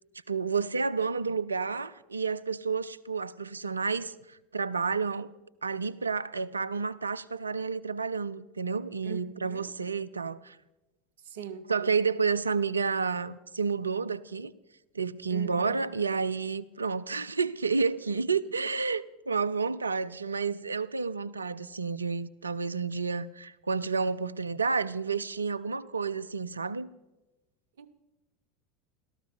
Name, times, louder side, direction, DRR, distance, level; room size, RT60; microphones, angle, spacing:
voice 1, 0.3-5.3 5.6-10.6 11.7-14.5 14.9-26.9, right 5 dB, 85° right, 0.5 m, -30 dB
voice 2, 9.0-9.6 11.2-11.7 15.3-15.9 25.8-25.9 27.8-27.9, right 7 dB, 70° right, 1.0 m, -42 dB
17.0 x 13.5 x 5.4 m
figure-of-eight pair, 80°, 0 cm